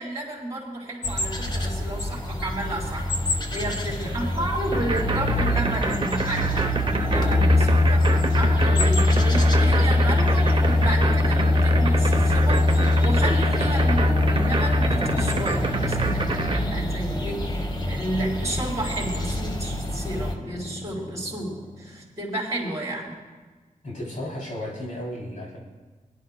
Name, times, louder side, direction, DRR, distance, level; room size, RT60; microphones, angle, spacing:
voice 1, 0.0-6.7 7.0-23.1, right 1 dB, 20° right, -6 dB, 4.1 m, -32 dB
sound 1, 1.0-20.3, left 2 dB, 30° left, 1.1 m, -23 dB
voice 2, 3.6-4.3 7.5-7.7 23.8-25.6, left 1 dB, 70° left, -4 dB, 3.0 m, -35 dB
sound 2, 4.7-16.6, right 3 dB, 35° right, 0.8 m, -27 dB
sound 3, 14.8-22.1, left 1 dB, 5° left, 1.1 m, -36 dB
24.5 x 10.5 x 2.2 m, 1.3 s
wide cardioid pair, 90°, 14 cm